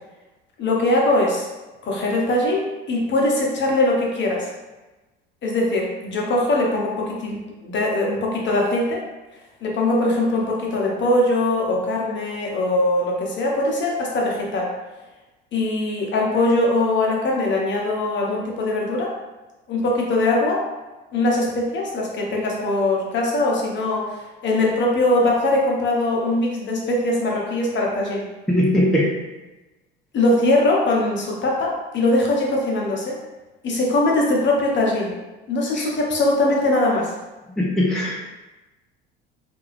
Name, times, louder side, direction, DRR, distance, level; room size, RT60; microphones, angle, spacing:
voice 1, 0.6-1.5 1.8-4.5 5.4-9.0 9.6-14.7 15.5-19.1 19.7-20.7 21.1-28.2 30.1-33.2 33.6-35.1 35.5-37.1, left 2 dB, 40° left, -2 dB, 0.8 m, -21 dB
voice 2, 28.5-29.1 35.7-35.9 37.6-38.3, left 1 dB, ahead, -4 dB, 0.5 m, -20 dB
2.5 x 2.2 x 3.1 m, 1.1 s
hypercardioid pair, 65°, 30 cm